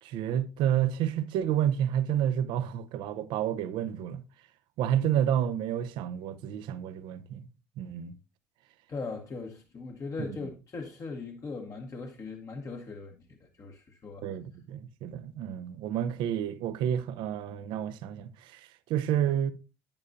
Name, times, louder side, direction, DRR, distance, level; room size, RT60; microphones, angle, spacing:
voice 1, 0.0-4.2 4.8-7.5 7.8-8.1 10.2-10.5 14.2-19.5, right 10 dB, 65° right, 0.7 m, -30 dB
voice 2, 8.9-14.3, left 4 dB, 40° left, 1.3 m, -39 dB
9.4 x 8.8 x 2.5 m
hypercardioid pair, 60°, 9 cm